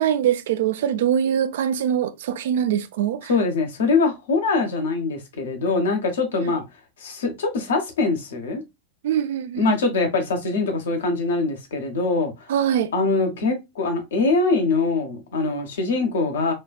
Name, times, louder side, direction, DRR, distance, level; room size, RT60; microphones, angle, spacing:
voice 1, 0.0-3.3 6.4-6.5 9.0-9.7 12.5-12.9, right 9 dB, 55° right, 0.4 m, -23 dB
voice 2, 3.3-6.6 7.0-8.6 9.6-12.5 12.9-16.5, left 3 dB, 60° left, 1.0 m, -23 dB
4.3 x 2.4 x 2.2 m
figure-of-eight pair, 90°, 0 cm